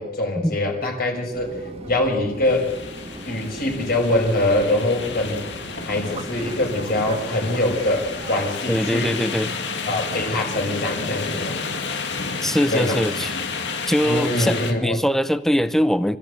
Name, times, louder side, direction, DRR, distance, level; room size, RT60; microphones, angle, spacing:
voice 1, 0.0-1.5 1.8-2.7 3.3-5.4 5.8-9.2 9.9-11.6 12.7-13.0 14.0-15.0, left 1 dB, 55° left, 0 dB, 6.0 m, -23 dB
Fixed-wing aircraft airplane, 1.3-8.4, right 1 dB, 35° right, 2.1 m, -38 dB
sound 1, 2.4-14.7, left 4 dB, 70° left, 2.4 m, -31 dB
voice 2, 8.7-9.5 12.4-13.3 13.9-16.2, equal, ahead, 12 dB, 0.8 m, -22 dB
27.5 x 14.5 x 8.3 m, 0.97 s
head